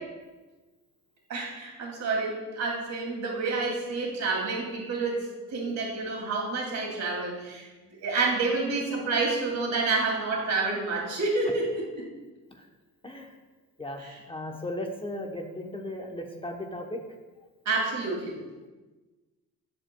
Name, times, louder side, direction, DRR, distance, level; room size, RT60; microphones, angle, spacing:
voice 1, 1.3-7.7 8.0-12.0 14.0-14.2 17.7-18.3, right 3 dB, 65° right, -1 dB, 2.5 m, -29 dB
voice 2, 13.0-13.3 13.8-17.0, left 1 dB, 20° left, 2 dB, 0.8 m, -36 dB
14.5 x 5.1 x 2.2 m, 1.2 s
cardioid pair, 90°, 30 cm